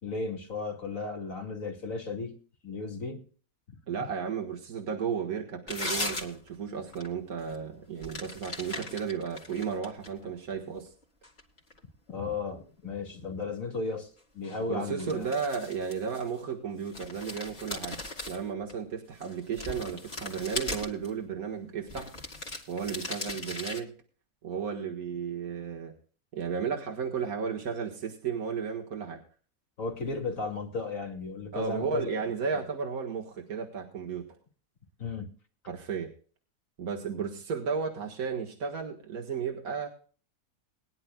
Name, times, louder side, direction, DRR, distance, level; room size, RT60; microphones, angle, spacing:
voice 1, 0.0-2.4 2.6-3.3 12.1-15.3 29.8-32.1 32.5-32.6 35.0-35.3, left 3 dB, 65° left, 2 dB, 2.9 m, -35 dB
voice 2, 3.9-10.9 14.7-18.0 18.3-22.1 22.7-23.9 24.4-25.9 26.3-29.2 31.5-34.3 35.7-36.1 36.8-39.9, right 6 dB, 80° right, 1 dB, 2.1 m, -34 dB
sound 1, 5.7-6.5 6.9-7.1 7.4-7.6 8.0-10.3 10.8-11.8 14.4-14.6 15.0-16.5 16.8-18.7 19.2-21.1 21.9-23.8, left 2 dB, 45° left, 2.9 m, -38 dB
21.5 x 11.0 x 2.3 m, 0.40 s
omnidirectional pair, 1.5 m